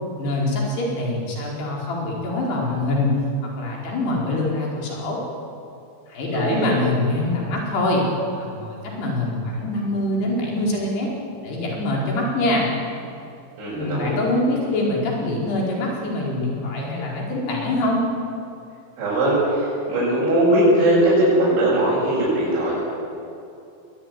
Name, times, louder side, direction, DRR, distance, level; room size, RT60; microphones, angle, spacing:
voice 1, 0.2-3.1 3.4-5.2 6.1-8.1 8.4-11.1 11.4-12.7 13.7-18.0, left 2 dB, 65° left, -2 dB, 6.7 m, -24 dB
voice 2, 6.3-6.7 13.6-14.2 19.0-22.7, right 1 dB, 85° right, -10 dB, 9.7 m, -20 dB
22.0 x 20.0 x 9.6 m, 2.6 s
omnidirectional pair, 5.2 m